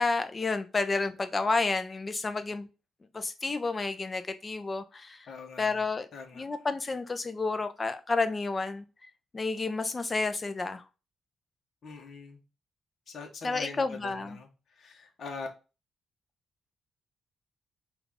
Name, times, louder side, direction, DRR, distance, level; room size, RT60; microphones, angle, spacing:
voice 1, 0.0-2.7 3.1-5.3 5.6-6.1 6.3-8.8 9.3-10.8 13.4-14.4, left 3 dB, 20° left, 9 dB, 0.4 m, -30 dB
voice 2, 5.3-5.8 6.1-6.4 11.8-12.4 13.1-15.5, left 4 dB, 50° left, 3 dB, 0.9 m, -43 dB
5.6 x 2.4 x 3.5 m, 0.32 s
wide cardioid pair, 160°, 0 cm